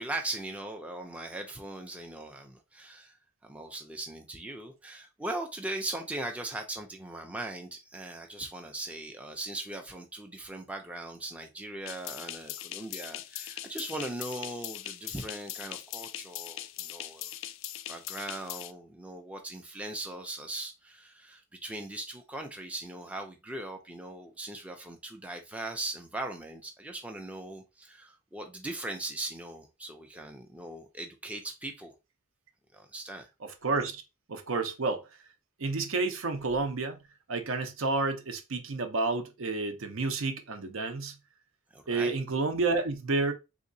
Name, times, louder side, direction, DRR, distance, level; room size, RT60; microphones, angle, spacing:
voice 1, 0.0-3.2 3.4-17.3 17.9-31.9 32.7-33.3 41.7-42.1, right 2 dB, 5° right, 0.4 m, -39 dB
sound 1, 11.9-18.7, left 13 dB, 65° left, 0.3 m, -41 dB
voice 2, 33.4-34.0 34.3-35.0 35.6-37.0 37.3-41.1 41.9-43.3, right 3 dB, 75° right, 0.6 m, -30 dB
3.5 x 2.8 x 2.6 m
head